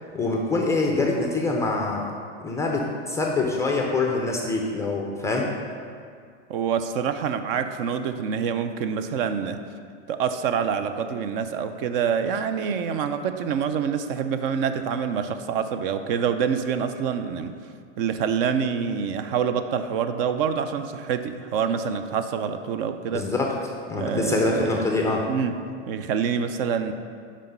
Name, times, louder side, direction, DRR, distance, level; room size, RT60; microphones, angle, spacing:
voice 1, 0.1-2.1 2.4-5.5 23.1-23.5 23.9-25.2, left 3 dB, 10° left, 0 dB, 0.4 m, -24 dB
voice 2, 6.5-9.6 10.1-17.6 18.0-23.3 24.0-24.8 25.3-25.5 25.9-26.9, right 7 dB, 50° right, 9 dB, 0.5 m, -26 dB
5.7 x 5.0 x 5.4 m, 2.2 s
hypercardioid pair, 125°, 36 cm